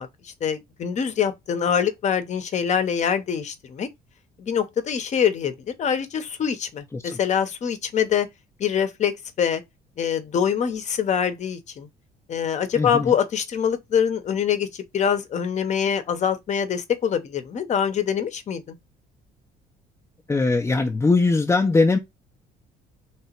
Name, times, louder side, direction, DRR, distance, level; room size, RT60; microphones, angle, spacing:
voice 1, 0.0-3.9 4.4-8.3 8.6-9.6 10.0-11.9 12.3-18.8, left 8 dB, 45° left, 0.8 m, -24 dB
voice 2, 12.8-13.1 20.3-22.0, left 3 dB, 15° left, 0.5 m, -20 dB
3.3 x 2.9 x 4.3 m
cardioid pair, 110°, 17 cm